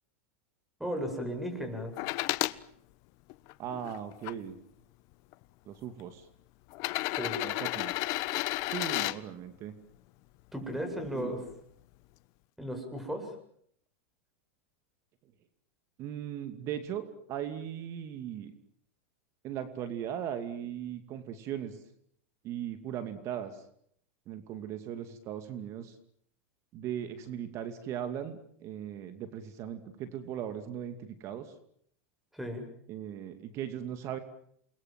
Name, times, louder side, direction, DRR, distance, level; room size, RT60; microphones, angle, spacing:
voice 1, 0.8-1.9 7.1-7.4 10.5-11.4 12.6-13.4 32.3-32.7, equal, 5° right, 5 dB, 7.6 m, -35 dB
fliping coin on wood table, 2.0-2.6 3.3-4.3 5.3-5.4 6.7-9.2 11.0-11.1, left 20 dB, 50° left, 1.1 m, -32 dB
voice 2, 3.6-4.6 5.7-6.3 7.4-8.0 8.6-9.8 11.1-11.3 16.0-18.5 19.4-21.8 22.4-23.6 24.3-26.0 26.7-31.5 32.9-34.2, right 10 dB, 45° right, 10 dB, 2.5 m, -38 dB
28.5 x 22.0 x 7.7 m, 0.68 s
supercardioid pair, 125°, 7 cm